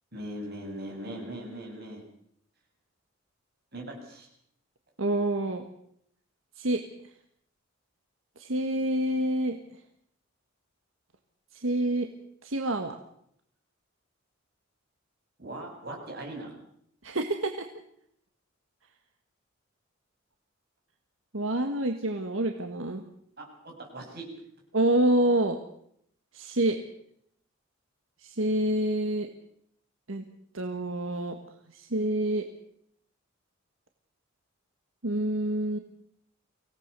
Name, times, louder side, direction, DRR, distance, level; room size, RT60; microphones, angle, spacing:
voice 1, 0.1-2.0 3.7-4.3 15.4-16.6 23.4-24.3, right 1 dB, 50° right, 0 dB, 7.5 m, -40 dB
voice 2, 5.0-5.6 6.6-6.8 8.4-9.6 11.5-12.1 12.4-12.9 17.0-17.7 21.3-23.0 24.7-25.6 26.3-26.8 28.2-29.3 30.1-30.2 30.5-31.4 31.7-32.4 35.0-35.8, right 1 dB, 80° right, 5 dB, 1.6 m, -27 dB
24.5 x 18.0 x 6.8 m, 0.70 s
head